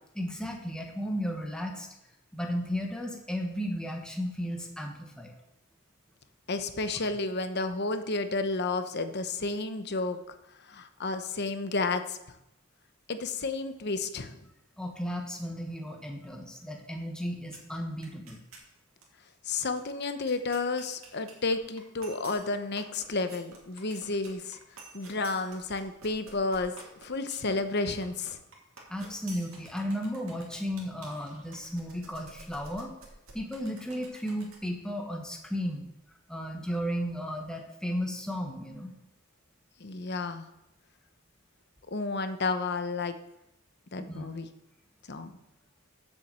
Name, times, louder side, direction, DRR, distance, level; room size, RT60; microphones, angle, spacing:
voice 1, 0.1-1.9 2.3-5.3 7.0-7.1 14.8-18.4 28.9-32.9 33.3-35.8 36.3-38.9 44.1-44.3, equal, 5° left, 1 dB, 1.2 m, -34 dB
voice 2, 6.5-10.3 10.6-12.2 13.1-14.4 19.4-24.6 24.9-26.7 27.0-28.4 39.8-40.5 41.9-43.1 43.9-44.5 45.1-45.3, left 3 dB, 50° left, 9 dB, 0.9 m, -31 dB
sound 1, 17.5-17.8 18.0-18.7 19.0-19.1 19.3-34.7, right 3 dB, 70° right, 2.6 m, -51 dB
7.8 x 7.5 x 7.5 m, 0.87 s
head